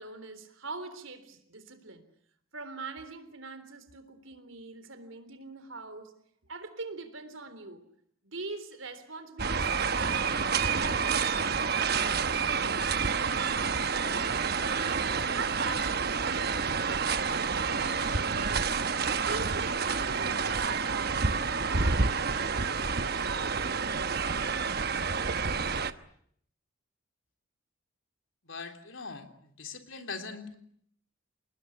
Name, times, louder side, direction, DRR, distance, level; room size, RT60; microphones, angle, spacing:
voice 1, 0.0-2.0 2.5-6.2 6.5-7.9 8.2-12.7 13.0-14.2 14.6-18.7 19.1-24.7, right 3 dB, 70° right, 11 dB, 3.7 m, -43 dB
sound 1, 9.4-25.9, right 5 dB, 50° right, 1.1 m, -29 dB
voice 2, 28.4-30.6, left 4 dB, 65° left, 6 dB, 3.4 m, -41 dB
28.0 x 20.0 x 10.0 m, 0.69 s
head